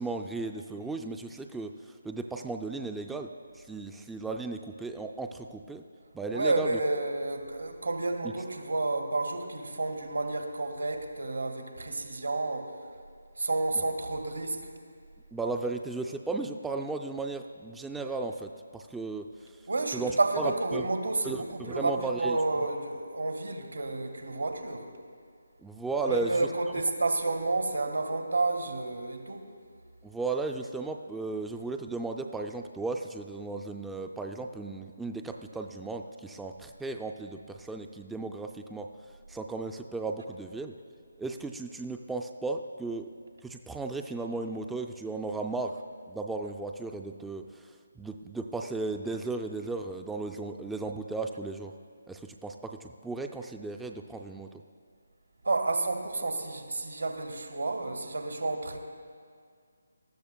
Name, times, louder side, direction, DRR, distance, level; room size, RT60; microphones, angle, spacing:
voice 1, 0.0-3.3 3.5-5.8 6.1-6.8 15.3-19.5 19.9-20.1 20.4-20.8 21.2-22.4 25.6-26.4 30.0-38.9 39.3-40.7 41.2-43.1 43.4-45.8 46.1-47.7 48.0-51.7 52.1-54.5, right 3 dB, 5° right, 4 dB, 0.3 m, -35 dB
voice 2, 6.3-12.7 13.4-14.7 19.7-24.9 26.1-29.5 55.4-58.8, right 2 dB, 80° right, 4 dB, 1.7 m, -30 dB
19.5 x 13.5 x 2.3 m, 2.1 s
figure-of-eight pair, 150°, 0 cm